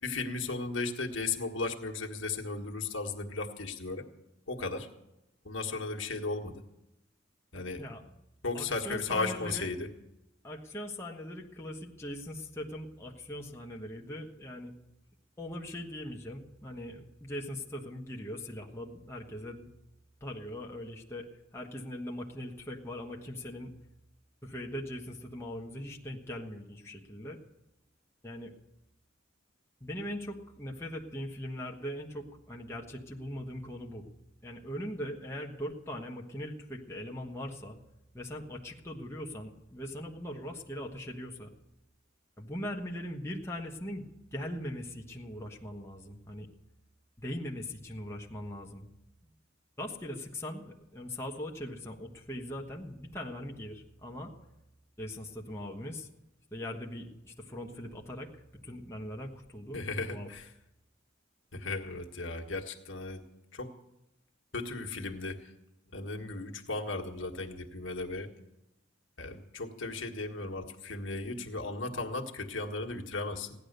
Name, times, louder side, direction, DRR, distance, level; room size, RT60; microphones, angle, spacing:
voice 1, 0.0-4.1 4.5-4.9 5.4-6.6 7.5-7.8 8.4-9.9 59.7-60.5 61.5-63.2 63.5-63.7 64.5-65.5 65.9-68.3 69.2-73.5, left 3 dB, 75° left, 2 dB, 1.6 m, -35 dB
voice 2, 8.5-9.7 10.4-14.7 15.4-19.7 20.2-21.3 21.5-23.7 24.4-27.4 28.2-28.5 29.8-34.1 34.4-37.8 38.1-41.5 42.4-44.0 44.3-46.5 47.2-48.9 49.8-54.3 55.0-56.1 56.5-59.8 60.1-60.3, left 1 dB, 15° left, -1 dB, 1.3 m, -40 dB
16.5 x 11.0 x 6.7 m, 0.91 s
head